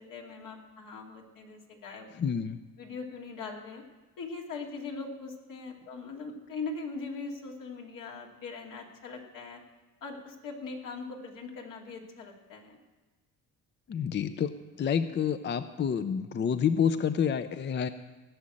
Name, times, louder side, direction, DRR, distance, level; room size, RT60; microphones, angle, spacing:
voice 1, 0.0-2.1 2.8-3.8 4.2-9.6 10.0-12.8, left 4 dB, 75° left, 1 dB, 2.4 m, -41 dB
voice 2, 2.2-2.6 13.9-14.5 14.8-17.9, left 7 dB, 35° left, 11 dB, 0.5 m, -28 dB
17.0 x 6.4 x 8.6 m, 1.2 s
cardioid pair, 110°, 33 cm